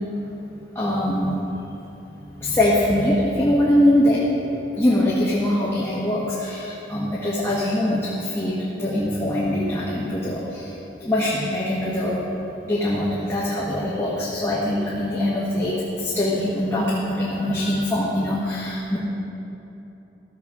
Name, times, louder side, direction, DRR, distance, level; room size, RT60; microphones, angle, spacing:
voice 1, 0.7-1.5 2.1-10.7 11.0-12.2 12.6-19.0, left 1 dB, 15° left, -7 dB, 1.3 m, -23 dB
14.5 x 7.0 x 4.8 m, 3.0 s
head